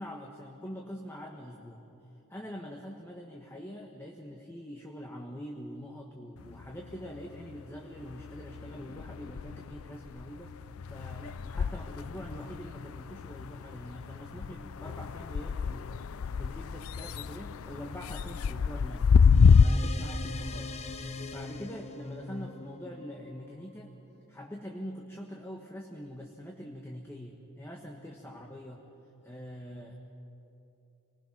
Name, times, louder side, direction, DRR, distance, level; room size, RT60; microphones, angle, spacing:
voice 1, 0.0-1.9 2.3-10.5 10.9-16.1 16.4-19.2 19.6-20.8 21.3-23.9 24.3-28.8 29.2-29.9, equal, 10° left, 0 dB, 1.2 m, -44 dB
sound 1, 6.4-7.6 7.9-19.6, left 6 dB, 75° left, 0.4 m, -28 dB
sound 2, 19.3-24.1, left 3 dB, 30° left, 0.8 m, -41 dB
27.5 x 19.5 x 5.9 m, 2.9 s
head